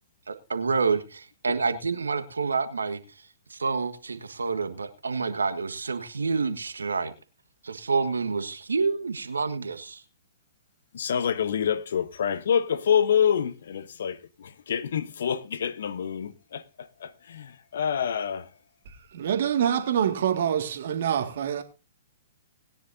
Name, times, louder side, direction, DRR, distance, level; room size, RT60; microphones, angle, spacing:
voice 1, 0.3-3.0 3.5-7.1 7.6-10.0, right 4 dB, 80° right, 1.4 m, -28 dB
voice 2, 10.9-18.5, left 8 dB, 65° left, 1.0 m, -27 dB
voice 3, 18.9-21.6, right 9 dB, 60° right, 1.9 m, -26 dB
20.0 x 10.0 x 2.7 m
figure-of-eight pair, 115°, 0 cm